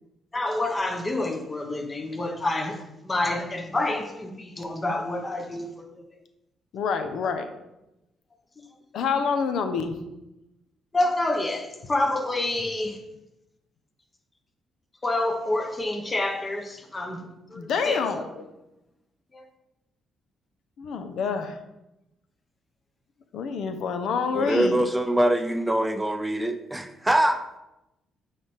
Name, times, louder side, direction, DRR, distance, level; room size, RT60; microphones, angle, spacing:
voice 1, 0.3-2.8 3.1-5.7 10.9-13.0 15.0-17.2 17.5-18.2, left 2 dB, 25° left, 1.0 m, -28 dB
voice 2, 6.7-7.5 8.9-9.9 17.5-18.2 20.8-21.6 23.3-24.8, left 5 dB, 70° left, 0.7 m, -27 dB
voice 3, 24.3-27.4, right 1 dB, 10° right, 0.4 m, -23 dB
8.8 x 3.4 x 4.5 m
cardioid pair, 90°, 0 cm